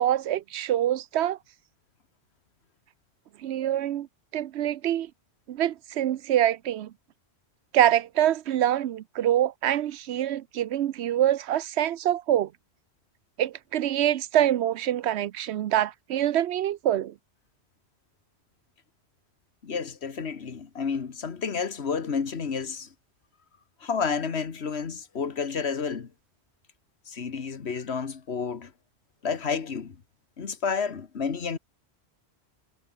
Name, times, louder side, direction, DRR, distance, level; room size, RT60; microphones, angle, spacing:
voice 1, 0.0-1.4 3.4-4.1 4.3-5.1 5.5-6.9 7.7-12.5 13.4-17.1, right 11 dB, 90° right, 0.9 m, -25 dB
voice 2, 19.6-22.9 23.8-26.1 27.1-28.7 29.2-30.0 30.4-31.6, left 5 dB, 75° left, 1.7 m, -30 dB
omnidirectional pair, 1.1 m